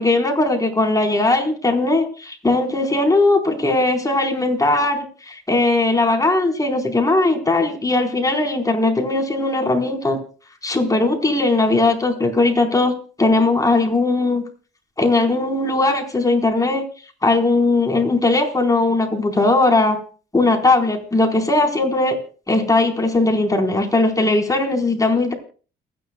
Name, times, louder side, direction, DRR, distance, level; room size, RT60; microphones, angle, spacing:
voice 1, 0.0-10.2 10.6-12.9 13.2-14.4 15.0-16.8 17.2-20.0 20.3-22.2 22.5-25.3, left 2 dB, 15° left, 3 dB, 4.3 m, -18 dB
29.5 x 10.5 x 2.3 m, 0.37 s
cardioid pair, 90°, 20 cm